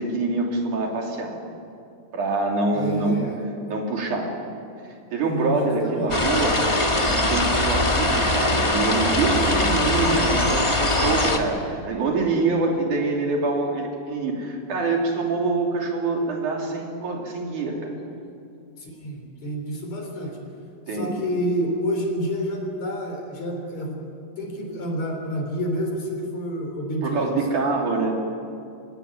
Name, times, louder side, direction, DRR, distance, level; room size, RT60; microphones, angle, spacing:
voice 1, 0.0-1.4 2.1-3.2 3.6-4.3 5.1-6.6 7.0-18.0 20.9-21.1 27.0-28.1, right 3 dB, 90° right, 0 dB, 4.6 m, -25 dB
voice 2, 2.7-3.4 5.3-6.2 18.8-20.4 20.9-24.0 24.4-27.7, equal, 65° left, 1 dB, 5.0 m, -29 dB
sound 1, 6.1-11.4, left 1 dB, 20° left, 0.8 m, -21 dB
24.5 x 17.5 x 9.8 m, 2.5 s
omnidirectional pair, 3.4 m